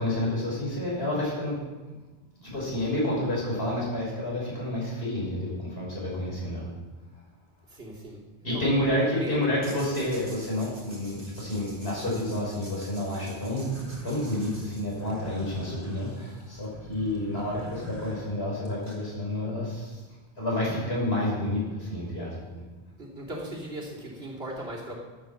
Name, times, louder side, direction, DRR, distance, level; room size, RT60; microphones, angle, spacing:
voice 1, 0.0-1.6 2.4-6.7 8.4-13.7 14.0-20.0 20.4-22.6, left 1 dB, 75° left, -5 dB, 5.7 m, -29 dB
voice 2, 7.7-8.7 9.0-9.4 23.0-24.9, right 1 dB, 80° right, -4 dB, 3.4 m, -38 dB
sound 1, 9.6-15.3, right 1 dB, 60° right, 3.0 m, -49 dB
sound 2, 13.6-19.1, right 1 dB, 35° right, 4.1 m, -45 dB
12.0 x 9.0 x 7.2 m, 1.2 s
omnidirectional pair, 1.0 m